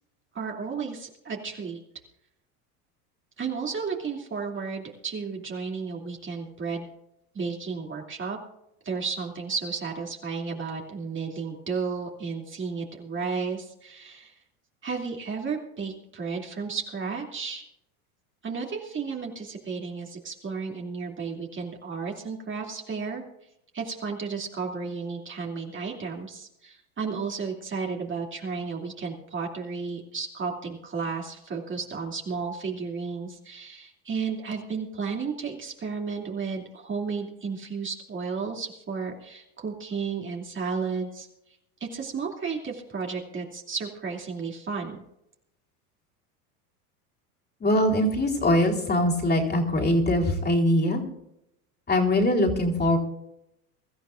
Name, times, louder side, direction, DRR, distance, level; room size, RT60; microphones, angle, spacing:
voice 1, 0.3-1.8 3.4-6.9 7.3-8.4 8.8-14.3 14.8-17.6 18.4-23.2 23.7-41.3 41.8-45.0, right 5 dB, 25° right, 0 dB, 2.9 m, -33 dB
voice 2, 47.6-51.0 51.9-53.0, left 1 dB, 20° left, -1 dB, 4.0 m, -22 dB
24.0 x 14.0 x 2.6 m, 0.83 s
hypercardioid pair, 90°, 45 cm